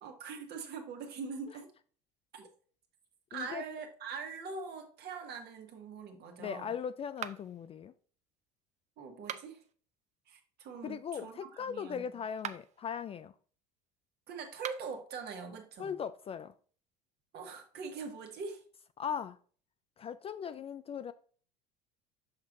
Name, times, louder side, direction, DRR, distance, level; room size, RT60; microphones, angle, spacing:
voice 1, 0.0-1.7 2.3-2.5 3.3-6.7 9.0-9.6 10.3-12.2 14.3-15.9 17.3-18.6, right 5 dB, 50° right, 1.5 m, -43 dB
voice 2, 3.3-3.6 6.4-7.9 10.8-13.3 15.8-16.5 19.0-19.4 20.0-21.1, left 7 dB, 30° left, 0.3 m, -39 dB
sound 1, 7.2-7.7 9.1-9.7 12.3-12.8 14.5-15.0, right 9 dB, 35° right, 0.5 m, -42 dB
6.5 x 5.7 x 2.6 m
hypercardioid pair, 75°, 21 cm